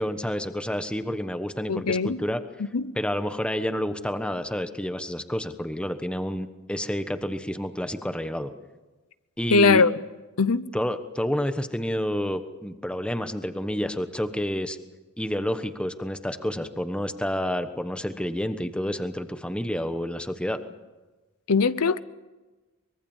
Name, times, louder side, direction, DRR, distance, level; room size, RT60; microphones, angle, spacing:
voice 1, 0.0-2.4 2.9-8.5 9.4-9.8 10.7-14.8 15.2-20.6, equal, 5° left, 1.2 m, -29 dB
voice 2, 1.7-2.2 2.7-2.9 9.5-9.9 10.4-10.7 21.5-22.0, left 4 dB, 80° left, 0.8 m, -21 dB
24.0 x 22.5 x 7.3 m
head